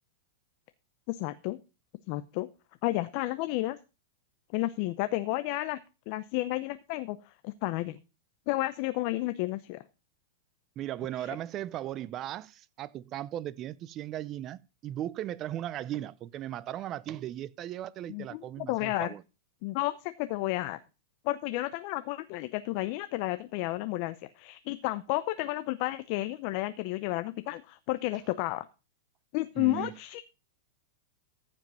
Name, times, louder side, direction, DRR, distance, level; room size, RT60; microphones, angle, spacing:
voice 1, 1.1-1.6 2.1-2.5 2.8-3.8 4.5-5.8 6.1-7.2 7.4-8.0 8.5-9.8 11.2-11.4 18.1-19.1 19.6-20.8 21.2-28.7 29.3-30.2, left 18 dB, 50° left, 0.7 m, -32 dB
voice 2, 10.8-19.2 29.6-29.9, right 12 dB, 35° right, 0.6 m, -37 dB
14.5 x 5.2 x 5.5 m
hypercardioid pair, 130°, 0 cm